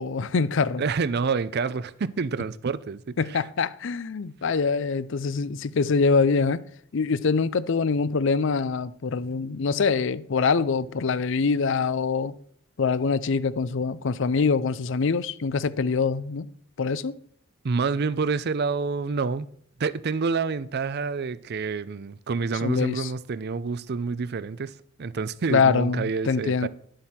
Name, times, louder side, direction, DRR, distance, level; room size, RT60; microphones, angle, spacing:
voice 1, 0.0-0.8 3.2-6.6 6.9-12.3 12.8-16.5 16.8-17.2 22.6-23.1 25.5-26.7, left 4 dB, 65° left, 0.5 m, -24 dB
voice 2, 0.8-3.4 17.6-19.5 19.8-26.7, right 4 dB, 55° right, 0.5 m, -28 dB
11.0 x 7.6 x 4.3 m
head